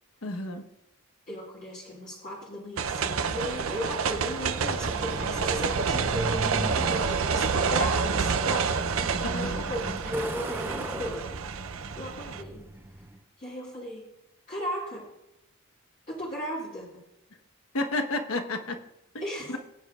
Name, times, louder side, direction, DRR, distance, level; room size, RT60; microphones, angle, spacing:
voice 1, 0.2-0.7 9.2-9.7 17.7-18.8 19.5-19.6, left 2 dB, 70° left, 6 dB, 1.2 m, -31 dB
voice 2, 1.3-12.6 13.4-14.0 14.5-15.1 16.1-17.0 19.2-19.6, equal, 35° left, -5 dB, 1.9 m, -36 dB
sound 1, 2.8-12.4, right 5 dB, 65° right, 0.6 m, -28 dB
Truck, 4.5-13.2, right 1 dB, 10° right, 0.5 m, -38 dB
20.5 x 9.2 x 2.4 m, 0.90 s
head